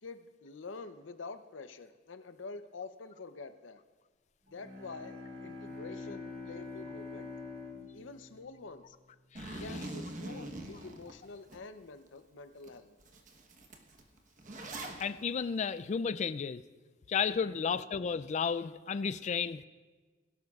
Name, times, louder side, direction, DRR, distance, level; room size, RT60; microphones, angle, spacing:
voice 1, 0.0-3.8 4.5-7.3 7.9-9.0 9.6-12.9 17.4-17.7, left 3 dB, 70° left, 9 dB, 0.7 m, -47 dB
Bowed string instrument, 4.5-9.3, left 3 dB, 65° right, 3.2 m, -45 dB
Zipper (clothing), 9.3-11.6 12.1-12.2 12.6-12.7 13.0-15.0, right 1 dB, 40° right, 1.1 m, -43 dB
voice 2, 15.0-16.6 17.1-19.7, left 6 dB, 35° left, 14 dB, 0.3 m, -33 dB
21.5 x 12.0 x 2.4 m, 1.4 s
head